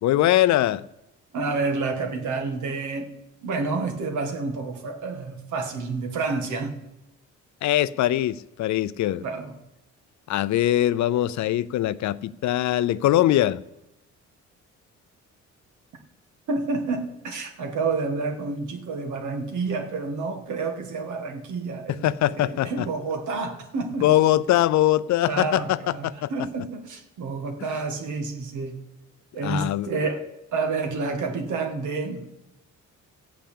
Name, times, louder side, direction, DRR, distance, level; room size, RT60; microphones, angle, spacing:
voice 1, 0.0-0.8 7.6-9.2 10.3-13.6 21.9-22.9 24.0-26.3 29.4-29.9, left 13 dB, 70° left, 0.5 m, -22 dB
voice 2, 1.3-3.1 3.4-6.7 9.2-9.5 16.5-22.1 22.4-24.1 25.2-28.8 29.3-30.2 30.5-32.2, right 4 dB, 75° right, 1.8 m, -29 dB
15.0 x 5.7 x 8.5 m
cardioid pair, 90°, 30 cm